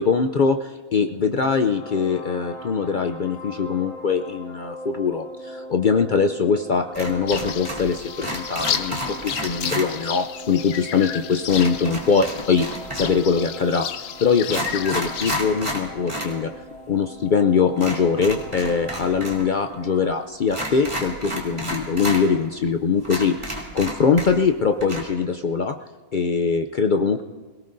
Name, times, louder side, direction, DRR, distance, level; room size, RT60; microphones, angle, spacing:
voice 1, 0.0-12.7 12.9-13.9 14.2-16.5 16.9-25.8 26.1-27.2, left 5 dB, 70° left, 6 dB, 0.4 m, -22 dB
sound 1, 1.4-20.2, left 1 dB, 25° left, 4.6 m, -41 dB
sound 2, 6.9-7.9 8.2-9.9 11.5-13.2 13.9-14.0 14.4-16.3 16.6-16.7 17.8-19.4 19.7-19.8 20.5-22.2 22.7-22.8 23.0-24.5 24.8-25.0, equal, 20° right, 2.9 m, -31 dB
sound 3, 7.3-15.4, left 9 dB, 85° left, 1.2 m, -32 dB
24.5 x 18.0 x 2.6 m, 1.5 s
omnidirectional pair, 1.5 m